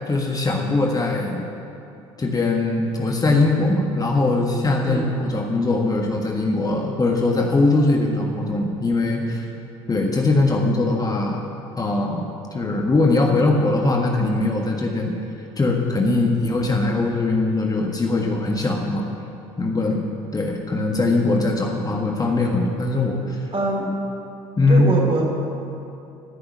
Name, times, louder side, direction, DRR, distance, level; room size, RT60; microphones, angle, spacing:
voice 1, 0.1-1.5 2.2-9.5 9.9-11.4 11.8-12.3 12.5-15.1 15.6-19.1 19.6-20.0 20.3-23.4 24.6-24.9, left 2 dB, 25° left, 1 dB, 1.6 m, -21 dB
voice 2, 23.5-23.9 24.7-25.3, right 2 dB, 35° right, -1 dB, 4.0 m, -23 dB
14.5 x 6.7 x 9.4 m, 2.7 s
hypercardioid pair, 65°, 16 cm